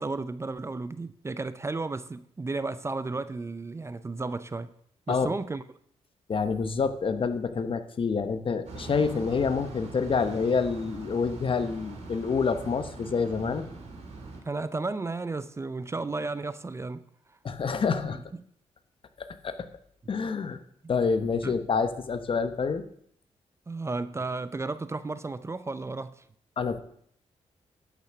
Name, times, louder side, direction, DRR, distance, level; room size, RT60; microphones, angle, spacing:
voice 1, 0.0-4.7 5.1-5.6 14.4-17.0 17.3-17.4 21.4-21.5 23.7-26.2, right 3 dB, 20° right, 0.5 m, -33 dB
voice 2, 6.3-13.7 17.4-18.2 19.2-19.7 20.1-20.6 20.9-22.8 26.6-26.8, left 5 dB, 45° left, 1.0 m, -27 dB
sound 1, 8.7-14.4, right 3 dB, 65° right, 3.5 m, -42 dB
12.0 x 6.1 x 5.9 m
cardioid pair, 85°, 12 cm